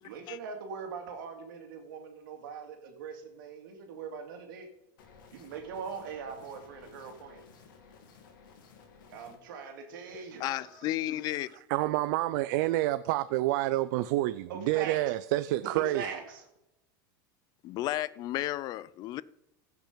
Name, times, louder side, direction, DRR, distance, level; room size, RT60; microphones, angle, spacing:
voice 1, 0.0-4.7 5.3-7.4 9.1-10.9 14.5-15.0 15.6-16.4, right 5 dB, 80° right, 2.4 m, -41 dB
sound 1, 5.0-9.4, left 5 dB, 85° left, 2.3 m, -56 dB
voice 2, 10.4-11.6 17.6-19.2, left 15 dB, 40° left, 0.4 m, -33 dB
voice 3, 11.7-16.1, right 16 dB, 65° right, 0.4 m, -28 dB
16.0 x 5.9 x 5.1 m
supercardioid pair, 140°, 11 cm